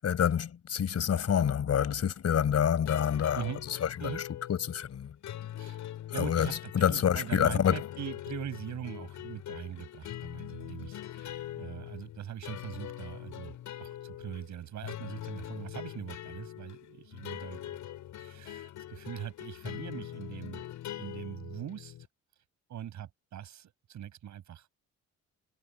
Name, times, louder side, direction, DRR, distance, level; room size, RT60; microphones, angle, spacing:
voice 1, 0.0-3.4 3.8-4.1 4.5-5.1 6.2-7.8, left 8 dB, 55° left, 6.3 m, -27 dB
sound 1, 2.9-22.1, left 12 dB, 80° left, 6.0 m, -42 dB
voice 2, 6.1-13.5 13.8-17.7 18.2-20.6 21.0-22.0 22.7-24.7, right 10 dB, 70° right, 7.3 m, -42 dB
cardioid pair, 90°, 30 cm